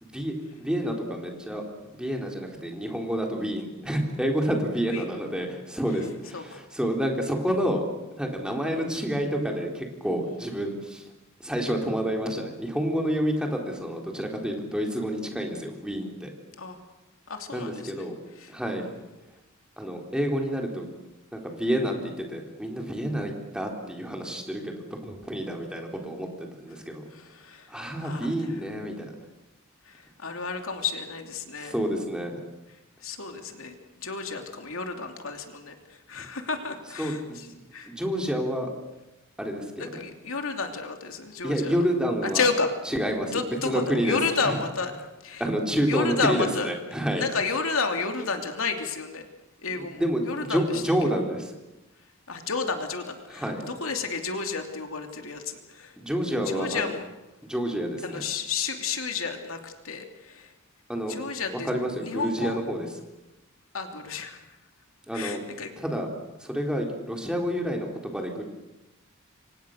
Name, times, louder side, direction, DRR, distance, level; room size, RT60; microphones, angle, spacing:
voice 1, 0.0-0.3 0.6-1.6 1.9-7.9 8.1-11.0 11.4-16.3 17.5-18.1 18.5-18.8 19.8-20.9 21.3-27.0 27.7-29.1 31.6-32.4 37.0-37.6 37.8-38.7 39.4-40.0 41.4-42.4 42.9-44.2 44.4-44.6 45.4-47.2 49.8-51.5 53.3-53.6 56.0-56.9 57.4-58.2 60.9-61.2 61.6-62.9 65.1-65.4 65.8-66.1 66.4-68.4, equal, 5° right, 1 dB, 3.8 m, -29 dB
voice 2, 8.6-8.9 16.6-16.8 17.3-18.1 18.4-18.5 18.8-19.0 27.1-28.5 29.8-31.7 33.0-37.5 37.7-37.9 39.8-41.7 42.2-42.7 43.3-44.9 45.2-45.4 45.9-46.7 47.1-49.3 49.6-50.8 52.3-56.0 56.4-57.1 58.0-60.5 61.1-61.7 62.0-62.6 63.7-64.6 65.1-65.7, left 4 dB, 75° left, 5 dB, 2.9 m, -31 dB
28.5 x 25.0 x 6.6 m, 1.0 s
head